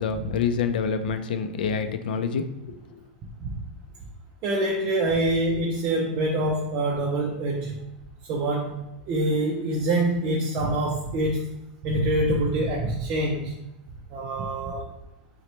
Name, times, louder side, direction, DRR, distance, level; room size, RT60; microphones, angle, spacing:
voice 1, 0.0-2.5, left 6 dB, 85° left, 8 dB, 0.3 m, -27 dB
voice 2, 4.4-7.8 8.3-11.5 11.8-13.6 14.1-14.9, right 1 dB, 30° right, -1 dB, 0.4 m, -25 dB
4.0 x 2.1 x 2.9 m, 0.92 s
supercardioid pair, 165°, 5 cm